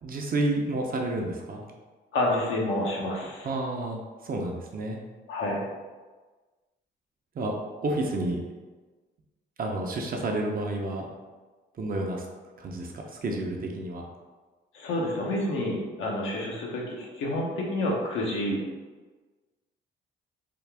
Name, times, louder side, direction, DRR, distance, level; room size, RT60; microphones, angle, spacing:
voice 1, 0.0-1.6 3.4-5.0 7.4-7.5 7.8-8.4 9.6-11.1 11.8-12.2 12.6-14.0, right 2 dB, 45° right, 1 dB, 0.7 m, -30 dB
voice 2, 2.1-3.5 5.3-5.6 14.7-18.6, left 1 dB, 80° left, -2 dB, 1.0 m, -29 dB
3.8 x 2.4 x 3.4 m, 1.3 s
cardioid pair, 90°, 20 cm